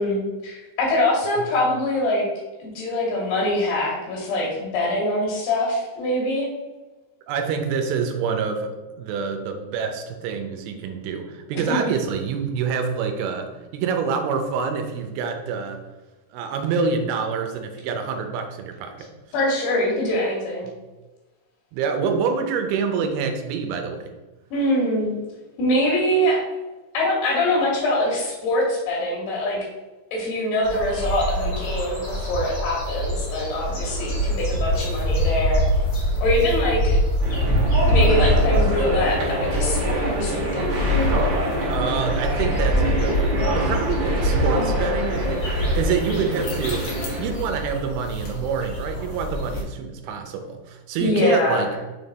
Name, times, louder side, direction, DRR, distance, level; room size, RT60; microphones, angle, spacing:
voice 1, 0.0-2.3 2.6-6.5 11.7-11.8 19.3-20.7 24.5-25.1 25.6-26.4 26.9-29.6 30.1-35.6 36.2-37.0 37.9-40.8 51.0-51.7, left 1 dB, 75° left, -3 dB, 3.2 m, -23 dB
voice 2, 7.3-8.7 9.0-15.8 16.3-19.1 21.7-24.1 41.7-45.5 45.7-46.9 47.2-51.7, right 5 dB, 80° right, 5 dB, 2.4 m, -26 dB
sound 1, 30.6-49.6, equal, 55° left, 1.2 m, -24 dB
sound 2, 37.2-47.3, right 1 dB, 40° right, 1.9 m, -26 dB
6.5 x 3.8 x 4.0 m, 1.2 s
omnidirectional pair, 4.8 m